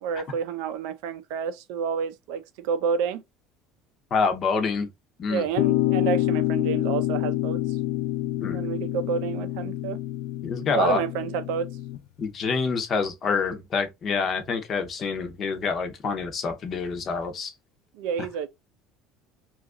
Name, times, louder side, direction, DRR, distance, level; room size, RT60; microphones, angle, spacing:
voice 1, 0.0-3.2 5.3-7.6 8.5-10.0 10.7-11.7 18.0-18.5, right 7 dB, 75° right, 0.4 m, -29 dB
voice 2, 4.1-4.9 5.2-5.5 8.4-8.6 10.4-11.0 12.2-17.5, left 5 dB, 30° left, 0.6 m, -27 dB
sound 1, 5.6-12.0, left 15 dB, 70° left, 0.3 m, -27 dB
2.9 x 2.4 x 3.6 m
cardioid pair, 175°, 0 cm